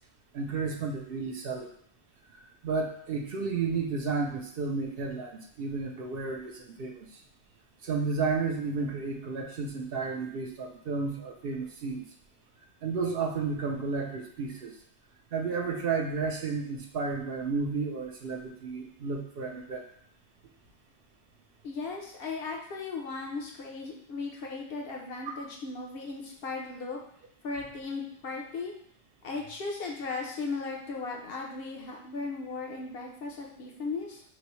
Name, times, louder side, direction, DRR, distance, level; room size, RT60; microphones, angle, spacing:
voice 1, 0.3-1.7 2.3-7.1 7.8-12.1 12.8-14.7 15.3-19.8 25.3-25.4, right 4 dB, 65° right, 2 dB, 0.8 m, -32 dB
voice 2, 21.6-27.0 27.4-28.7 29.2-34.2, left 4 dB, 60° left, -1 dB, 0.9 m, -37 dB
6.0 x 2.1 x 3.0 m, 0.64 s
omnidirectional pair, 1.1 m